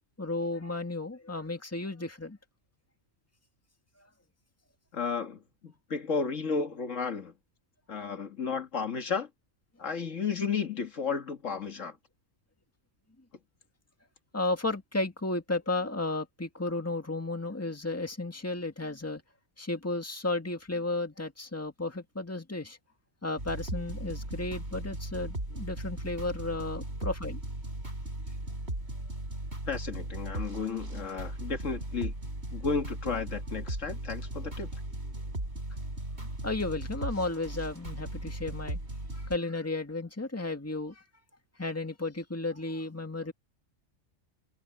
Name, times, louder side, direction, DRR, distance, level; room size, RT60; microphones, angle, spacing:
voice 1, 0.2-2.4 14.3-19.2 19.6-22.8 23.2-27.4 36.4-38.8 39.1-41.0 41.6-43.3, left 2 dB, 10° left, 2.0 m, -33 dB
voice 2, 4.9-7.3 7.9-9.3 9.8-12.0 29.7-32.1 32.5-34.7, left 5 dB, 75° left, 2.0 m, -33 dB
sound 1, 23.4-39.4, right 1 dB, 55° right, 6.5 m, -37 dB
omnidirectional pair, 1.3 m